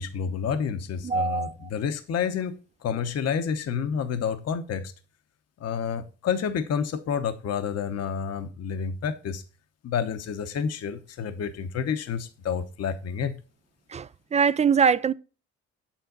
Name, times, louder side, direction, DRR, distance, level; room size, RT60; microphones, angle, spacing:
voice 1, 0.0-2.6 2.8-4.9 5.6-9.4 9.8-13.3, left 7 dB, 55° left, 0.9 m, -29 dB
voice 2, 1.0-1.7 13.9-15.1, right 6 dB, 25° right, 0.4 m, -23 dB
7.9 x 7.3 x 3.9 m
cardioid pair, 90°, 30 cm